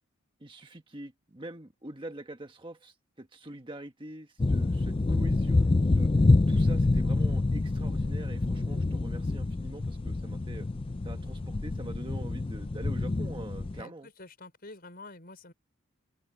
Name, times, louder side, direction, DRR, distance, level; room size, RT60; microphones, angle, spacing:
voice 1, 0.4-10.7 11.0-14.1, right 1 dB, 25° right, 1.5 m, -44 dB
sound 1, 4.4-13.8, left 2 dB, 25° left, 0.4 m, -27 dB
voice 2, 13.7-15.5, left 2 dB, 45° left, 5.6 m, -48 dB
open air
head